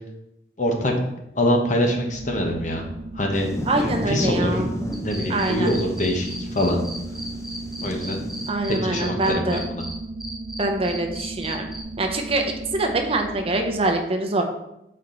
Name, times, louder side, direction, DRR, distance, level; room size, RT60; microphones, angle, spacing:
voice 1, 0.6-0.9 1.3-2.9 3.1-3.5 3.8-4.6 4.9-6.8 7.8-8.2 8.8-9.8, left 1 dB, 45° left, 2 dB, 1.0 m, -24 dB
sound 1, 2.0-13.9, right 2 dB, 75° right, 0.4 m, -36 dB
sound 2, 3.3-8.5, left 1 dB, 15° left, 0.5 m, -32 dB
voice 2, 3.7-4.7 5.3-5.7 8.5-9.6 10.6-11.7 12.0-14.4, right 2 dB, 35° right, 3 dB, 0.6 m, -24 dB
sound 3, 4.9-9.9 10.2-11.8, right 1 dB, ahead, 0.9 m, -36 dB
7.0 x 4.4 x 3.9 m, 0.86 s
head